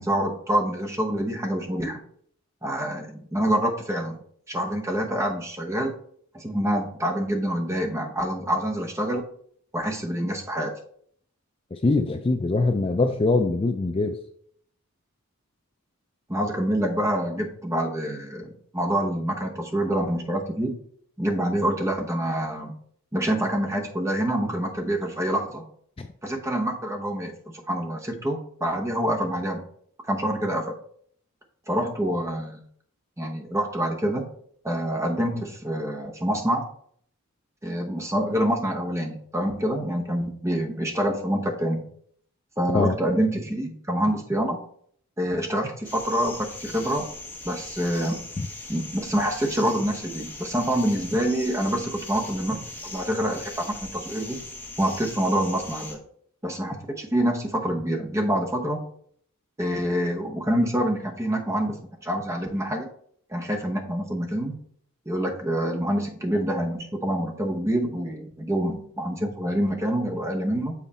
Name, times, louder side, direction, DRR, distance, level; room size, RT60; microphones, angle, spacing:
voice 1, 0.0-2.0 2.6-4.2 4.5-5.9 6.3-9.2 9.7-10.7 16.3-20.8 21.2-22.7 23.1-25.6 26.2-29.6 30.0-30.8 31.7-32.6 33.2-34.3 34.6-36.7 37.6-41.8 42.6-44.6 45.2-47.1 47.4-48.2 48.7-54.4 54.8-56.0 56.4-58.8 59.6-61.8 62.0-62.9 63.3-64.6 65.1-70.7, right 1 dB, 15° right, 2 dB, 0.9 m, -26 dB
voice 2, 11.7-14.2 26.0-26.1 42.7-43.0 48.4-48.5, left 3 dB, 25° left, 6 dB, 0.3 m, -23 dB
sound 1, 45.8-55.9, left 2 dB, 10° left, 1.0 m, -40 dB
7.5 x 4.1 x 4.2 m, 0.63 s
head